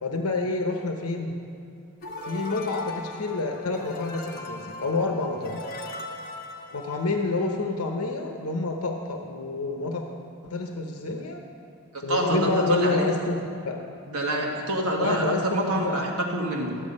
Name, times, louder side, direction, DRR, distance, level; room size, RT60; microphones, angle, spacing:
voice 1, 0.0-1.3 2.2-5.6 6.7-10.0 10.4-11.4 12.0-13.4 13.6-13.8 15.0-16.1, left 3 dB, 80° left, 3 dB, 0.9 m, -28 dB
sound 1, 2.0-7.5, left 2 dB, 45° left, 1.0 m, -39 dB
voice 2, 12.1-13.1 14.1-16.8, right 1 dB, 80° right, -1 dB, 1.7 m, -26 dB
12.5 x 7.9 x 5.3 m, 2.6 s
head